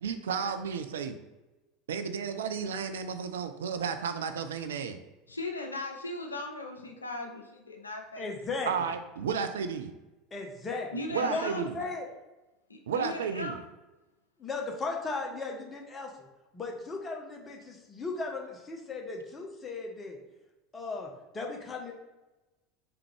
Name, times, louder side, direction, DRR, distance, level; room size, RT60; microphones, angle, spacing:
voice 1, 0.0-1.2 1.9-5.0 8.7-9.9 11.1-11.8 12.9-13.6, right 6 dB, 70° right, 9 dB, 0.3 m, -32 dB
voice 2, 5.3-8.4 10.9-11.9 12.7-13.5, left 2 dB, 85° left, 3 dB, 0.5 m, -38 dB
voice 3, 8.2-8.9 10.3-12.1 14.4-16.3 16.5-20.2 20.7-21.9, left 3 dB, 25° left, 1 dB, 0.8 m, -36 dB
3.4 x 3.4 x 3.3 m, 1.1 s
figure-of-eight pair, 75°, 0 cm